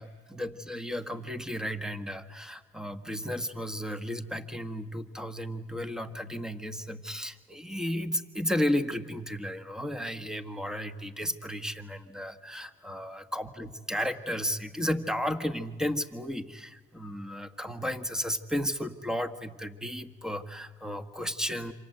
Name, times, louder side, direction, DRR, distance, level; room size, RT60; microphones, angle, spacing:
voice 1, 0.0-21.7, equal, 5° right, 9 dB, 1.7 m, -33 dB
27.5 x 26.5 x 8.1 m, 1.2 s
cardioid pair, 90°, 20 cm